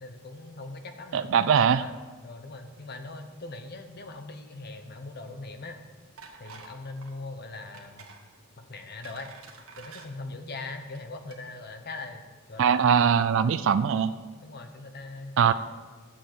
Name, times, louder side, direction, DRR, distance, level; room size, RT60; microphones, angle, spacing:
voice 1, 0.0-1.3 1.7-1.9 2.2-5.8 6.4-8.1 8.6-9.3 9.8-12.2 12.5-13.0 13.4-13.6 14.4-15.5, left 3 dB, 50° left, 6 dB, 0.9 m, -41 dB
voice 2, 1.1-1.8 12.6-14.1 15.4-15.5, right 7 dB, 60° right, 13 dB, 0.3 m, -21 dB
sound 1, 6.2-6.7 7.0-7.2 7.7-8.2 8.7-10.1 10.8-11.0 11.3-11.4, right 5 dB, 80° right, 1.4 m, -48 dB
7.6 x 6.7 x 7.8 m, 1.4 s
head